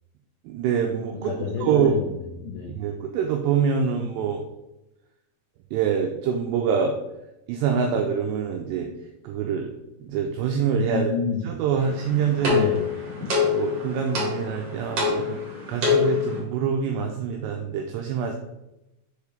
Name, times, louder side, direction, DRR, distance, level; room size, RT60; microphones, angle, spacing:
voice 1, 0.5-1.3 1.6-1.9 2.7-4.4 5.7-7.0 7.5-8.9 9.2-9.7 10.0-11.1 11.4-12.7 13.4-15.4 15.7-18.4, right 7 dB, 90° right, 3 dB, 2.4 m, -25 dB
voice 2, 1.2-2.8 10.9-11.5 12.5-12.9, left 5 dB, 90° left, 0 dB, 2.1 m, -29 dB
sound 1, 11.8-16.4, left 5 dB, 50° right, 1.9 m, -26 dB
7.2 x 4.7 x 3.4 m, 0.94 s
omnidirectional pair, 5.5 m